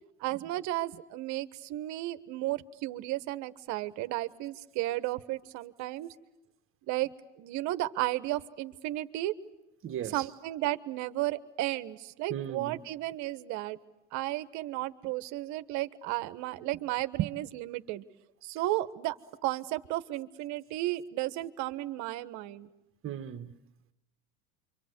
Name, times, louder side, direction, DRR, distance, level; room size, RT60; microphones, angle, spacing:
voice 1, 0.2-6.1 6.9-7.1 7.4-9.3 10.1-13.8 14.1-18.0 18.4-19.1 19.4-22.7, right 16 dB, 55° right, 1.4 m, -33 dB
voice 2, 9.8-10.2 12.3-12.8 23.0-23.5, right 10 dB, 35° right, 1.6 m, -37 dB
28.0 x 25.0 x 8.2 m
supercardioid pair, 105°, 35 cm